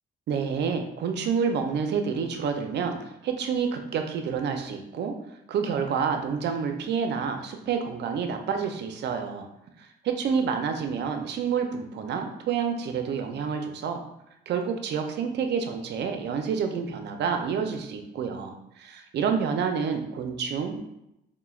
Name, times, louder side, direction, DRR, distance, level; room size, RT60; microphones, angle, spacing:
voice 1, 0.3-3.0 3.2-5.1 5.5-9.5 9.8-14.0 14.5-20.9, right 6 dB, 60° right, 5 dB, 0.4 m, -28 dB
3.0 x 2.1 x 2.3 m, 0.85 s
cardioid pair, 90°, 20 cm